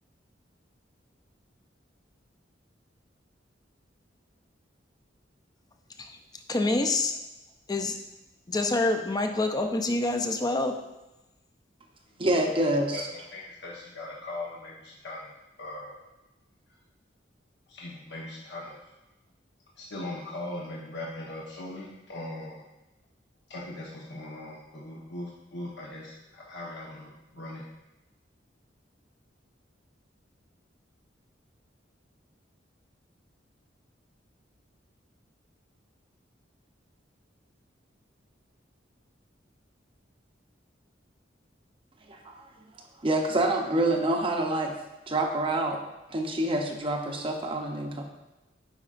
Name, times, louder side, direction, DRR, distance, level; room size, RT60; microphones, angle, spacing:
voice 1, 6.5-7.2 7.7-8.0 8.5-10.8, left 2 dB, 20° left, 0.5 m, -26 dB
voice 2, 12.2-13.1 42.1-42.5 43.0-44.7 45.1-45.8 46.1-48.0, right 1 dB, 30° right, 0.6 m, -27 dB
voice 3, 12.9-15.3 15.6-16.0 17.7-18.9 19.8-22.6 23.5-27.6, left 1 dB, 65° left, 1.0 m, -40 dB
9.6 x 4.8 x 2.5 m
head